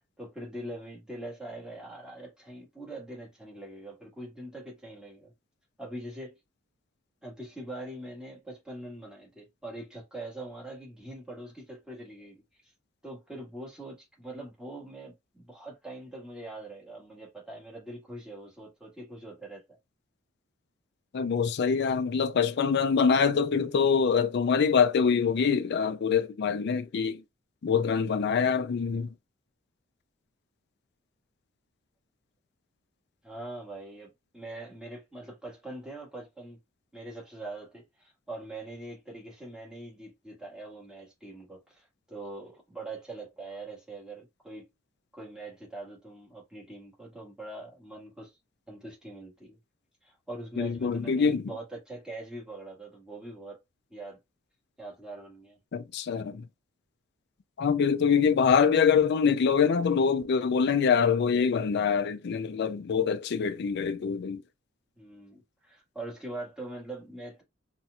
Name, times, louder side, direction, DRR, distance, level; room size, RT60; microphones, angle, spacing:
voice 1, 0.2-5.3 5.8-6.4 7.2-12.7 13.0-19.8 33.2-36.6 36.9-44.7 45.1-48.4 48.7-49.6 50.0-53.6 53.9-54.2 54.8-55.6 65.0-67.4, right 2 dB, 5° right, 1.5 m, -43 dB
voice 2, 21.1-27.2 27.6-29.1 50.6-51.4 55.7-56.5 57.6-64.4, left 6 dB, 60° left, 0.4 m, -25 dB
4.1 x 2.5 x 2.2 m
head